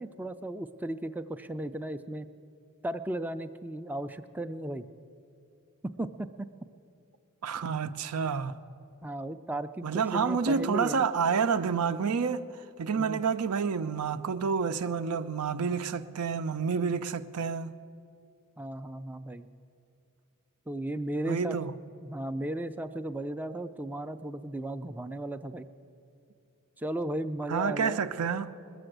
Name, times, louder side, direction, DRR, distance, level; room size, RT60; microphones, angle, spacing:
voice 1, 0.0-2.3 2.8-4.8 5.8-6.5 9.0-11.0 13.0-13.2 18.6-19.5 20.7-21.6 22.0-25.7 26.8-28.0, right 1 dB, 10° right, 0.3 m, -35 dB
voice 2, 7.4-8.5 9.8-17.7 21.3-21.7 27.5-28.5, right 6 dB, 90° right, 0.5 m, -29 dB
20.5 x 6.9 x 7.8 m
head